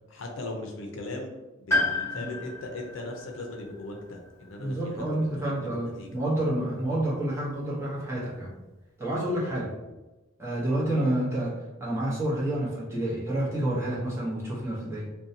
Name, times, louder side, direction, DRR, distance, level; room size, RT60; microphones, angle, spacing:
voice 1, 0.1-1.3 1.6-6.1 9.4-9.9, left 2 dB, 70° left, 2 dB, 0.5 m, -39 dB
Piano, 1.7-5.8 7.1-7.2, left 2 dB, 15° left, 1.0 m, -32 dB
voice 2, 4.6-8.5 9.0-9.7 10.4-11.5 11.8-15.1, right 1 dB, 15° right, -7 dB, 0.7 m, -29 dB
2.6 x 2.2 x 2.6 m, 1.1 s
head